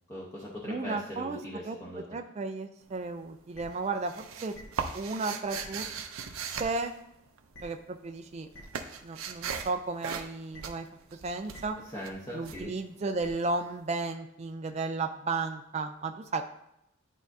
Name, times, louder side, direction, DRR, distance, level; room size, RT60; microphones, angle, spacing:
voice 1, 0.1-2.0 11.8-12.7, equal, 15° left, -6 dB, 0.8 m, -40 dB
voice 2, 0.7-1.4 1.6-1.8 2.1-4.5 4.9-5.9 6.6-6.9 7.6-8.5 9.0-10.9 11.1-11.8 12.3-16.4, right 3 dB, 30° right, 6 dB, 0.3 m, -34 dB
sound 1, 2.8-3.3 3.6-7.7 8.0-13.5, right 6 dB, 80° right, 0.6 m, -39 dB
sound 2, 3.5-3.6 4.5-4.6 5.5-5.6 6.5-6.6 7.5-7.6 8.5-8.6 9.5-9.6 10.5-10.6 11.5-11.6 12.5-12.6 13.2-13.3, left 1 dB, 60° left, 1.3 m, -48 dB
10.5 x 3.6 x 2.7 m, 0.81 s
head